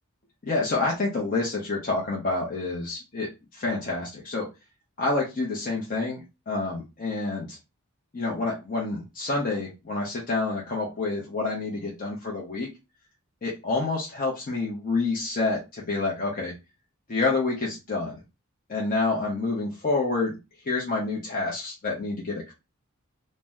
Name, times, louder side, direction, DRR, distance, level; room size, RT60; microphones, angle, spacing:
voice 1, 0.4-4.5 5.0-7.6 8.1-12.7 13.4-16.5 17.1-18.2 18.7-20.4 20.6-22.5, left 3 dB, 40° left, -3 dB, 0.7 m, -28 dB
2.7 x 2.1 x 3.3 m, 0.26 s
head